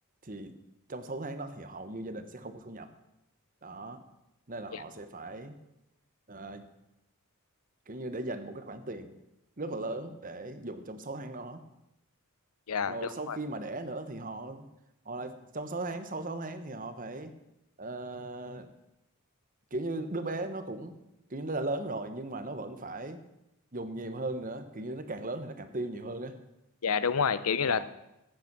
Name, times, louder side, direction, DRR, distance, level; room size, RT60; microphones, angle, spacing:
voice 1, 0.2-0.6 0.9-2.9 3.6-4.0 4.5-5.6 6.3-6.6 7.9-9.1 9.6-11.6 12.9-14.7 15.0-17.3 17.8-18.7 19.7-21.0 21.3-23.2 23.7-26.4 27.7-27.8, right 2 dB, 35° right, 9 dB, 1.1 m, -37 dB
voice 2, 26.8-27.8, left 6 dB, 80° left, 14 dB, 0.7 m, -28 dB
14.5 x 9.3 x 6.1 m, 0.89 s
head